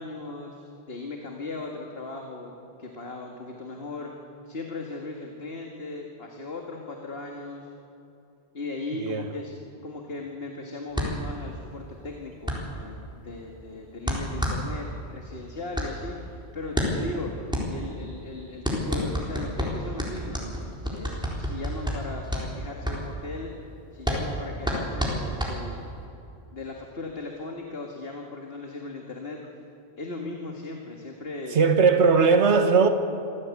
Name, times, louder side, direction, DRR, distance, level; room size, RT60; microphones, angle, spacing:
voice 1, 0.0-4.1 4.5-7.7 8.5-9.5 9.8-20.6 20.9-23.5 23.9-25.9 26.5-29.4 30.0-31.6, left 3 dB, 65° left, 1 dB, 2.1 m, -37 dB
voice 2, 8.9-9.3 31.5-32.9, right 5 dB, 90° right, 8 dB, 1.5 m, -19 dB
sound 1, 10.9-26.0, equal, 5° right, 3.9 m, -30 dB
25.5 x 15.5 x 8.4 m, 2.8 s
omnidirectional pair, 1.1 m